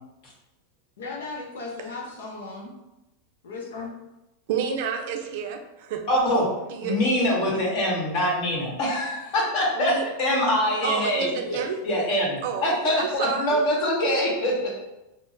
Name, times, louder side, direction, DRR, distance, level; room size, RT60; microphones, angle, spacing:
voice 1, 1.0-2.8 3.4-3.9, left 3 dB, 85° left, -1 dB, 0.6 m, -36 dB
voice 2, 4.5-6.0 6.7-7.0 9.8-10.1 10.8-11.8 12.4-13.6, right 6 dB, 65° right, 5 dB, 0.4 m, -30 dB
voice 3, 6.1-6.5 6.8-9.9 10.2-11.6 11.8-14.7, left 1 dB, 55° left, -4 dB, 1.3 m, -24 dB
3.6 x 2.0 x 2.6 m, 0.95 s
hypercardioid pair, 115°, 0 cm